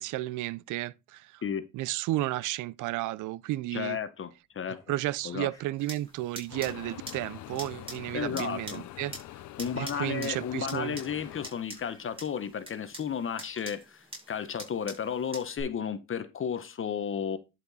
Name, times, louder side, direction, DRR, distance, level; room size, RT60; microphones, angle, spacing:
voice 1, 0.0-1.4 1.7-4.0 4.9-9.1 9.8-11.0, right 16 dB, 80° right, 0.5 m, -33 dB
voice 2, 3.7-4.8 5.2-5.5 8.1-8.9 9.6-17.4, left 7 dB, 45° left, 0.9 m, -33 dB
sound 1, 4.5-9.2 9.5-12.8, left 1 dB, 10° left, 3.8 m, -61 dB
sound 2, 5.8-15.6, right 2 dB, 20° right, 5.1 m, -46 dB
sound 3, 6.5-11.5, left 15 dB, 75° left, 0.6 m, -44 dB
11.0 x 4.4 x 4.1 m
cardioid pair, 90°, 30 cm